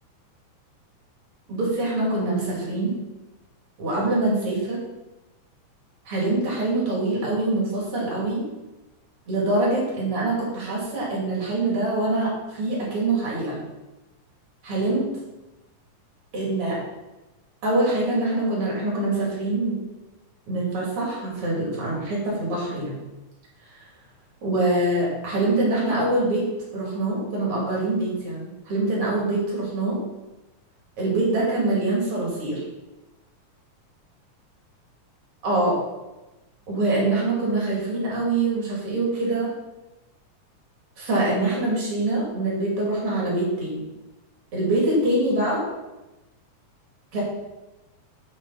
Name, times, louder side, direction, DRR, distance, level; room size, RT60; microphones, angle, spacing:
voice 1, 1.5-2.9 3.8-4.8 6.0-8.4 9.3-13.6 14.6-15.1 16.3-16.8 17.6-19.8 20.5-22.9 24.4-26.5 26.7-30.0 31.0-32.6 35.4-35.8 36.7-39.5 41.0-43.8 44.5-45.6 47.1-47.2, right 2 dB, 45° right, -4 dB, 3.3 m, -24 dB
6.6 x 6.0 x 5.6 m, 1.0 s
omnidirectional pair, 3.7 m